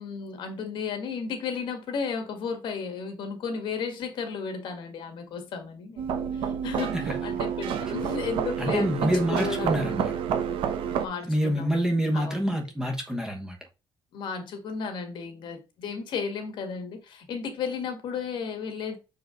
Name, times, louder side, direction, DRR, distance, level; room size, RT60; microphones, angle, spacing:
voice 1, 0.0-10.1 10.9-11.8 12.1-12.4 14.1-19.0, left 5 dB, 60° left, 1.8 m, -34 dB
sound 1, 6.0-11.1, right 8 dB, 75° right, 0.9 m, -29 dB
voice 2, 8.6-10.1 11.2-13.6, equal, 5° right, 1.1 m, -27 dB
6.5 x 4.7 x 3.8 m
cardioid pair, 170°, 9 cm